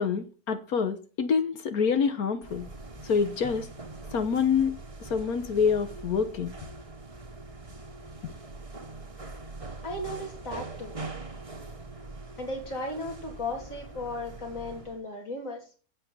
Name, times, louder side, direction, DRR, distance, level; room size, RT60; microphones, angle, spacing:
voice 1, 0.0-2.7 3.0-3.7 4.1-6.5, left 6 dB, 75° left, 1.6 m, -26 dB
sound 1, 2.4-15.0, right 3 dB, 25° right, 1.5 m, -43 dB
voice 2, 9.8-11.0 12.4-15.6, left 2 dB, 60° left, 3.7 m, -36 dB
9.6 x 8.1 x 9.4 m
omnidirectional pair, 1.6 m